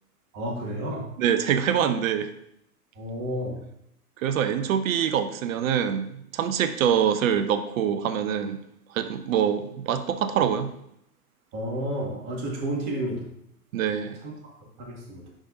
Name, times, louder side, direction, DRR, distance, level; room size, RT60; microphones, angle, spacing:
voice 1, 0.3-1.1 2.9-3.6 11.5-13.3 14.2-14.5 14.8-15.3, right 1 dB, 35° right, -2 dB, 2.5 m, -31 dB
voice 2, 1.2-2.3 4.2-8.6 8.9-10.7 13.7-14.2, right 8 dB, 55° right, 11 dB, 0.8 m, -25 dB
10.0 x 5.1 x 2.7 m, 0.75 s
hypercardioid pair, 110°, 47 cm